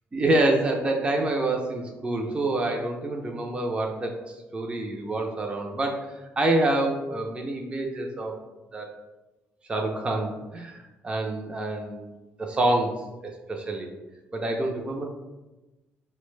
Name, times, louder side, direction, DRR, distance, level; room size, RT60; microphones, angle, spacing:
voice 1, 0.1-6.0 6.4-8.4 8.7-8.9 9.7-12.1 12.4-13.9 14.3-15.0, right 2 dB, 25° right, 1 dB, 0.5 m, -27 dB
4.3 x 2.1 x 3.1 m, 1.1 s
cardioid pair, 95°, 5 cm